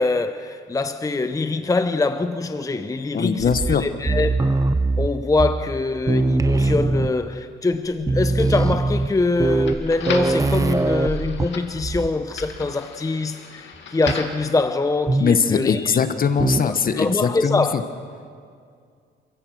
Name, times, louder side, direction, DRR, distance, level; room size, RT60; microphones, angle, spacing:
voice 1, 0.0-4.6 5.0-16.0 16.6-17.8, left 3 dB, 15° left, 0.7 m, -24 dB
voice 2, 3.1-3.9 15.2-17.8, left 6 dB, 45° left, 1.3 m, -21 dB
sound 1, 3.4-5.8 6.1-7.4 7.7-7.8 8.0-12.1 12.4-12.7 14.1-14.3 15.1-15.5 16.4-16.8, right 3 dB, 15° right, 0.7 m, -22 dB
sound 2, 8.6-14.4, left 5 dB, 70° left, 2.3 m, -37 dB
27.5 x 15.5 x 6.4 m
cardioid pair, 90°, 20 cm